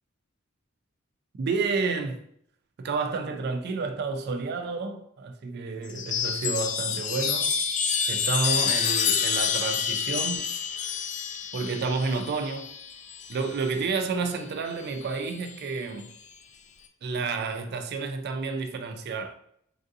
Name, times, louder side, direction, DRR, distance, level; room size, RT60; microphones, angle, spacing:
voice 1, 1.4-2.2 2.8-7.5 8.1-10.5 11.5-12.7 13.3-16.1 17.0-19.3, right 4 dB, 50° right, 0.4 m, -30 dB
Chime, 5.9-13.7 14.9-15.5, left 7 dB, 40° left, 0.3 m, -28 dB
3.3 x 2.5 x 2.6 m
head